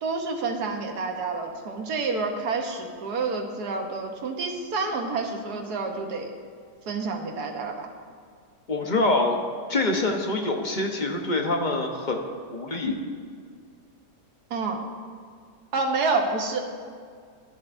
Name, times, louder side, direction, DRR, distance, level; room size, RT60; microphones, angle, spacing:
voice 1, 0.0-6.3 6.9-7.9 14.5-14.8 15.7-16.6, right 4 dB, 70° right, 3 dB, 1.6 m, -28 dB
voice 2, 8.7-9.4 9.7-12.2 12.5-12.9, left 2 dB, 35° left, 2 dB, 0.9 m, -25 dB
15.0 x 11.0 x 2.6 m, 2.1 s
omnidirectional pair, 1.8 m